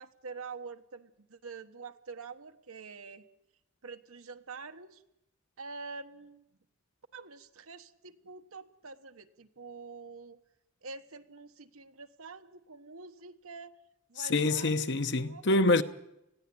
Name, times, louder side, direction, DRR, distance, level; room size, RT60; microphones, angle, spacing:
voice 1, 0.0-3.2 3.8-5.0 5.6-6.4 7.1-10.4 10.8-13.7 14.1-14.7 15.2-15.4, right 4 dB, 85° right, 1.3 m, -46 dB
voice 2, 14.2-15.8, left 2 dB, 55° left, 1.0 m, -26 dB
20.0 x 15.5 x 8.6 m
head